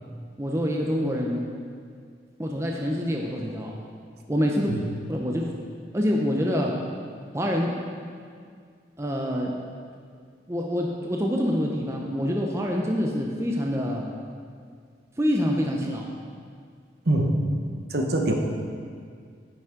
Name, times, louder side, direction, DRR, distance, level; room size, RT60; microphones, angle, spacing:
voice 1, 0.4-1.4 2.4-3.7 4.3-4.8 5.1-5.6 5.9-6.8 7.3-7.7 9.0-9.5 10.5-14.0 15.2-16.1, equal, 15° right, -1 dB, 0.6 m, -26 dB
voice 2, 17.1-17.4 17.9-18.3, right 1 dB, 60° right, 2 dB, 0.9 m, -23 dB
9.1 x 6.1 x 5.1 m, 2.1 s
head